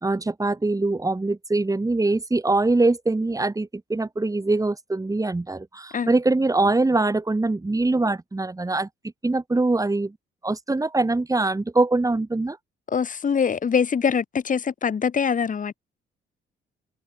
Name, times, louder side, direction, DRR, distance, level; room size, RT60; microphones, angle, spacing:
voice 1, 0.0-8.9 9.2-10.1 10.4-12.6, right 2 dB, 15° right, 4.4 m, -23 dB
voice 2, 12.9-15.7, left 6 dB, 40° left, 2.2 m, -23 dB
cardioid pair, 90°, 20 cm